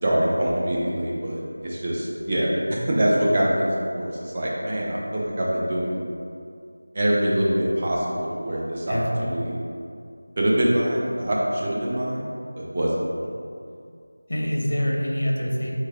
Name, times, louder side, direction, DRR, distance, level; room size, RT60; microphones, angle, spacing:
voice 1, 0.0-6.1 6.9-9.6 10.4-12.2 12.6-13.0, right 1 dB, 30° right, -5 dB, 0.6 m, -24 dB
voice 2, 8.9-9.3 14.3-15.7, equal, 75° left, -1 dB, 0.8 m, -25 dB
3.3 x 3.2 x 3.5 m, 2.4 s
figure-of-eight pair, 175°, 0 cm